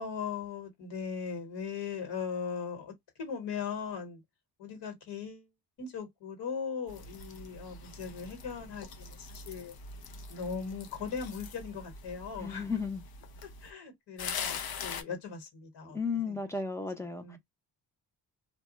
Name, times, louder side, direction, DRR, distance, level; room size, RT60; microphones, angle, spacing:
voice 1, 0.0-4.2 4.6-5.5 5.8-9.7 10.3-12.7 13.4-16.0 16.3-16.4 17.2-17.4, left 6 dB, 85° left, 1.3 m, -39 dB
sound 1, 6.9-13.7 14.2-15.0, left 5 dB, 60° left, 0.6 m, -43 dB
voice 2, 12.4-13.0 15.8-17.4, left 5 dB, 5° left, 0.5 m, -34 dB
2.3 x 2.1 x 3.8 m
wide cardioid pair, 135°, 41 cm